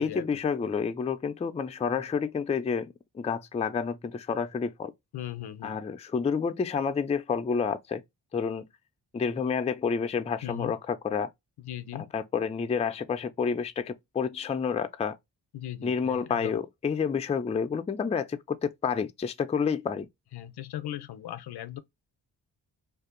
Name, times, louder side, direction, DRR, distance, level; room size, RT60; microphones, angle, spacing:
voice 1, 0.0-4.9 5.6-8.0 8.3-8.7 9.1-11.3 11.9-15.2 15.8-20.1, left 6 dB, 15° left, 0.3 m, -29 dB
voice 2, 5.1-5.8 10.4-10.7 11.6-12.1 15.5-16.6 20.3-21.8, left 12 dB, 65° left, 0.5 m, -38 dB
2.6 x 2.4 x 3.6 m
cardioid pair, 50°, 41 cm